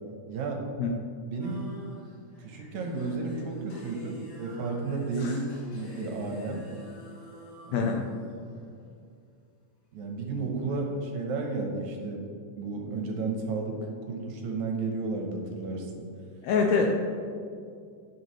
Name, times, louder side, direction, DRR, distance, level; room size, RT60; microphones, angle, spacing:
voice 1, 0.3-0.7 1.3-1.7 2.4-6.6 7.7-7.9 8.3-8.5 9.9-12.2 12.6-13.8 14.1-15.9, right 3 dB, 65° right, 1 dB, 2.1 m, -32 dB
sound 1, 1.4-8.7, left 1 dB, 70° left, 3.0 m, -49 dB
voice 2, 7.7-8.0 16.4-16.9, left 5 dB, 85° left, 2 dB, 1.6 m, -25 dB
11.0 x 6.3 x 3.2 m, 2.3 s
omnidirectional pair, 3.8 m